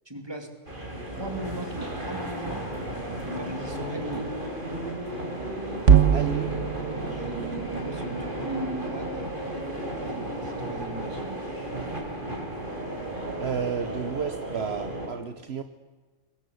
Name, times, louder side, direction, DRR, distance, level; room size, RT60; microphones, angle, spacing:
voice 1, 0.1-0.5 1.0-2.7 3.2-4.3 6.9-9.2 9.9-11.4, right 1 dB, 20° right, 6 dB, 2.9 m, -38 dB
sound 1, 0.7-15.1, right 1 dB, 45° right, 4.3 m, -34 dB
sound 2, 5.8-10.2, right 8 dB, 75° right, 1.6 m, -25 dB
voice 2, 6.1-6.5 13.4-15.6, right 7 dB, 60° right, 9 dB, 1.3 m, -32 dB
23.5 x 20.5 x 8.5 m, 1.3 s
omnidirectional pair, 1.3 m